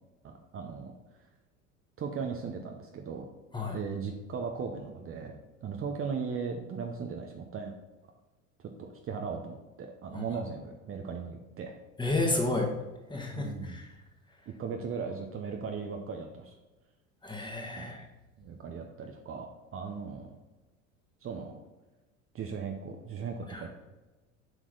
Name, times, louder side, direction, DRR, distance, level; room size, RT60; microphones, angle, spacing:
voice 1, 0.2-0.9 2.0-3.2 3.7-7.7 8.6-11.7 13.3-13.8 14.6-16.6 17.8-18.0 18.4-20.3 21.2-21.6 22.3-23.7, right 5 dB, 30° right, 3 dB, 0.8 m, -37 dB
voice 2, 12.0-12.7 13.1-13.9 17.2-18.0 23.5-23.6, left 2 dB, 10° left, 1 dB, 1.6 m, -31 dB
7.9 x 4.6 x 3.9 m, 1.1 s
hypercardioid pair, 85°, 41 cm